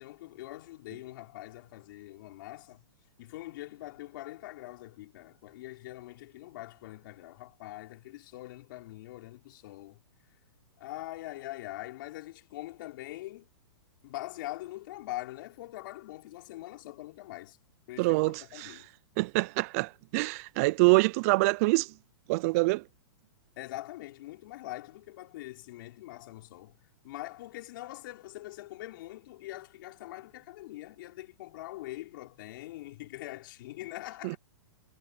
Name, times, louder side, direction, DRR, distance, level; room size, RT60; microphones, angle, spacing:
voice 1, 0.0-2.8 3.2-10.0 10.8-13.5 14.0-17.6 17.9-19.0 23.6-26.8 27.0-34.4, left 17 dB, 55° left, 5.4 m, -43 dB
voice 2, 18.0-18.7 19.2-21.9 22.3-22.8 34.2-34.4, right 25 dB, 35° right, 0.4 m, -25 dB
hypercardioid pair, 150°, 13 cm